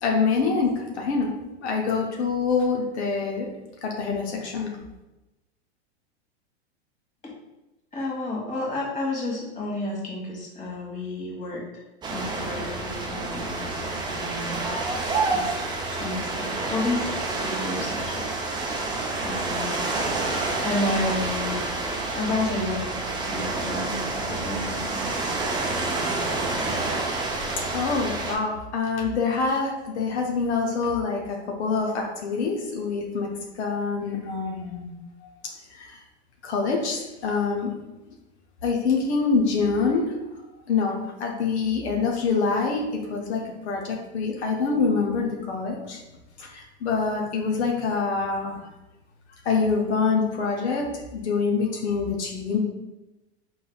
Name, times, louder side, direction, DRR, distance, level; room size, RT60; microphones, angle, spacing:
voice 1, 0.0-1.3 1.6-3.5 3.8-4.7 27.7-33.3 33.5-34.9 35.2-35.3 35.7-36.0 36.4-37.7 38.6-40.2 40.7-46.0 46.4-48.7 49.4-52.6, left 4 dB, 80° left, 0 dB, 0.8 m, -25 dB
voice 2, 7.9-11.8 12.1-14.6 15.3-15.6 15.9-17.2 17.4-18.4 19.2-19.9 20.6-21.6 22.1-25.1 25.8-25.9, left 2 dB, 20° left, -2 dB, 1.4 m, -31 dB
sound 1, 12.0-28.3, right 3 dB, 15° right, 0.5 m, -28 dB
4.4 x 3.2 x 2.3 m, 1.0 s
hypercardioid pair, 110°, 33 cm